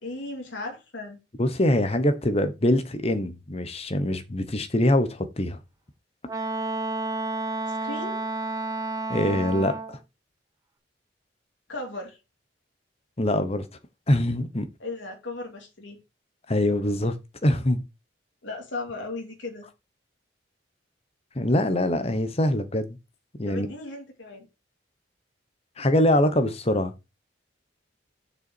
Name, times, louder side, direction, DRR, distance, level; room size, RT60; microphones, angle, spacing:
voice 1, 0.0-1.2 7.7-8.2 11.7-12.2 14.8-16.0 18.4-19.7 23.5-24.5, left 2 dB, 75° left, 2.5 m, -36 dB
voice 2, 1.4-5.6 9.1-9.8 13.2-13.7 14.1-14.7 16.5-17.1 17.4-17.8 21.3-22.9 23.4-23.7 25.8-26.9, left 1 dB, 30° left, 1.0 m, -23 dB
Wind instrument woodwind instrument, 6.3-10.0, right 3 dB, 20° right, 0.8 m, -30 dB
6.9 x 5.6 x 4.6 m
head